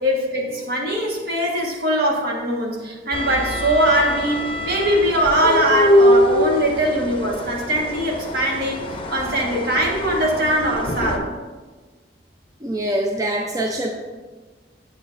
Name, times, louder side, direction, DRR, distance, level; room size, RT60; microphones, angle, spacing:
voice 1, 0.0-11.3, right 1 dB, 60° right, -1 dB, 1.5 m, -21 dB
sound 1, 3.1-11.2, left 1 dB, 30° left, 0.7 m, -23 dB
voice 2, 12.6-13.9, right 1 dB, 20° right, 0 dB, 0.5 m, -24 dB
8.8 x 7.0 x 2.6 m, 1.3 s
head